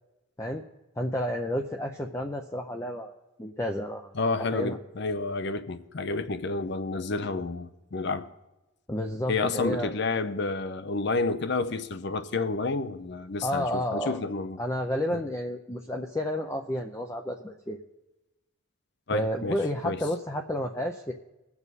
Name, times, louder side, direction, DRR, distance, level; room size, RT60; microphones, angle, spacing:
voice 1, 1.0-3.1 3.4-4.1 4.5-4.8 8.9-10.0 13.4-14.2 14.6-17.8 19.1-21.1, left 1 dB, 15° left, 0.5 m, -31 dB
voice 2, 4.1-8.3 9.3-14.6 15.1-15.2 19.1-19.6 19.8-20.0, left 3 dB, 55° left, 0.6 m, -30 dB
21.0 x 7.1 x 4.1 m
head